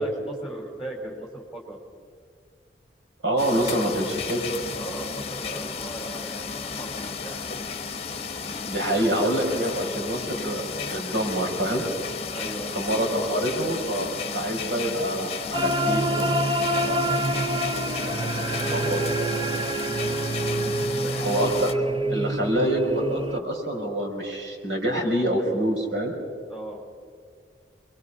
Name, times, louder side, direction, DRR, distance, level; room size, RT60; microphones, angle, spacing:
voice 1, 0.0-1.8 3.5-4.0 4.7-7.4 12.3-13.6 16.7-18.9 20.9-21.4 26.5-26.8, right 1 dB, ahead, 0 dB, 4.3 m, -39 dB
voice 2, 3.2-4.4 8.6-10.6 10.9-11.8 12.7-14.1 14.3-16.3 18.7-19.0 21.2-21.7 22.1-26.2, right 1 dB, 90° right, 0 dB, 4.9 m, -26 dB
sound 1, 3.4-21.7, left 5 dB, 35° left, 1.0 m, -33 dB
sound 2, 15.5-23.4, right 1 dB, 25° right, 0.6 m, -26 dB
26.5 x 22.5 x 5.6 m, 2.1 s
head